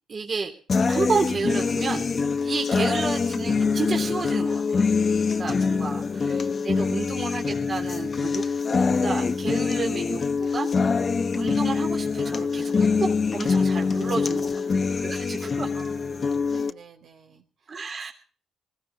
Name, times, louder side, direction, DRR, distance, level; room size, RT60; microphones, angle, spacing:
voice 1, 0.1-0.5 0.9-4.8 5.4-10.9 11.3-14.5 15.0-15.7 17.7-18.1, right 4 dB, 45° right, 2 dB, 3.2 m, -31 dB
sound 1, 0.7-16.7, left 5 dB, 40° left, 1.0 m, -24 dB
voice 2, 6.9-7.2 14.1-14.9 15.3-18.1, right 5 dB, 70° right, 2 dB, 3.8 m, -52 dB
20.5 x 15.5 x 4.1 m, 0.41 s
cardioid pair, 90°, 0 cm